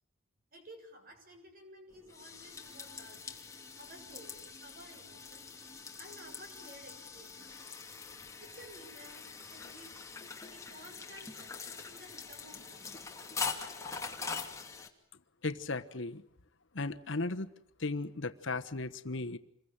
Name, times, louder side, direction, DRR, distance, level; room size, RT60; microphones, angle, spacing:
voice 1, 0.5-3.4 3.8-5.5 6.0-7.6 8.4-9.2 9.5-10.0 10.5-12.9, right 1 dB, 45° right, 4 dB, 7.2 m, -54 dB
sound 1, 1.9-14.9, left 5 dB, 15° left, 2.6 m, -43 dB
voice 2, 15.4-16.2 16.7-17.5 17.8-19.4, left 3 dB, 65° left, 9 dB, 1.2 m, -36 dB
27.5 x 22.5 x 8.9 m, 0.67 s
head